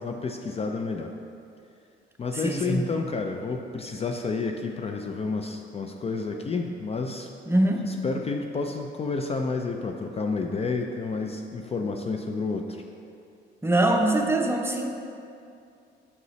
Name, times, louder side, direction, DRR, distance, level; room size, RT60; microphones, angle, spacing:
voice 1, 0.0-1.1 2.2-7.3 7.9-12.8, left 4 dB, 30° left, 3 dB, 0.4 m, -30 dB
voice 2, 2.4-2.9 7.5-7.8 13.6-14.9, right 1 dB, 10° right, 2 dB, 0.6 m, -23 dB
6.7 x 5.3 x 3.1 m, 2.5 s
cardioid pair, 90°, 20 cm